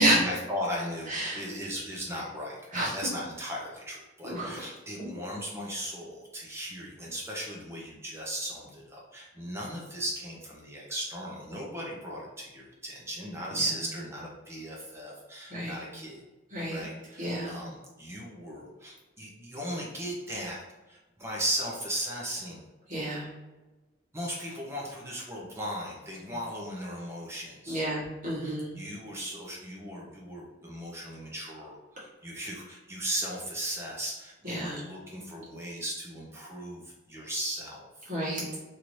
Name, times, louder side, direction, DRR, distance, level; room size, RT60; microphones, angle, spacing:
voice 1, 0.0-16.2 16.7-20.6 20.9-22.6 24.1-27.9 28.4-36.8 37.1-37.9, equal, 15° right, -3 dB, 0.6 m, -37 dB
voice 2, 1.1-1.4 2.7-3.0 4.2-4.5 5.0-5.1 13.5-13.6 15.5-15.8 16.5-16.8 17.2-17.6 22.9-23.3 27.7-28.7 34.4-34.8 38.1-38.6, right 1 dB, 40° right, -8 dB, 1.3 m, -29 dB
2.9 x 2.6 x 3.0 m, 1.1 s
head